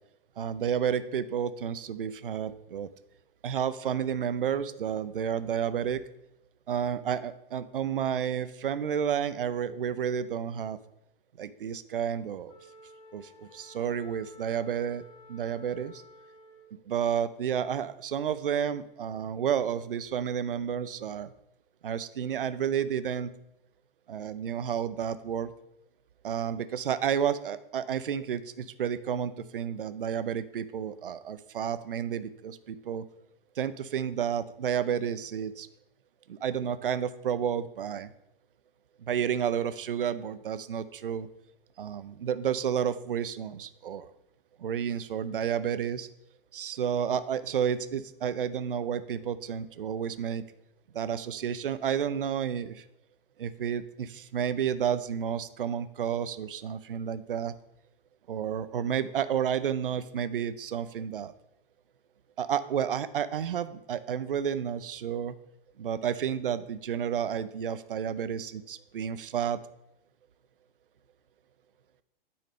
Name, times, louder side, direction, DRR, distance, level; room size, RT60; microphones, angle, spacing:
voice 1, 0.4-2.9 3.4-6.0 6.7-10.8 11.4-12.5 13.1-15.0 15.3-16.0 16.9-21.3 21.8-23.3 24.1-25.5 26.2-33.0 33.6-35.7 36.3-38.1 39.0-41.3 41.8-44.1 44.6-46.1 46.5-50.4 50.9-52.8 53.4-57.5 58.3-61.3 62.4-65.3 65.8-69.6, right 8 dB, 65° right, 14 dB, 0.5 m, -31 dB
Wind instrument woodwind instrument, 12.5-16.8, left 1 dB, 20° left, 1.3 m, -53 dB
9.4 x 4.8 x 3.5 m, 0.82 s
figure-of-eight pair, 110°, 30 cm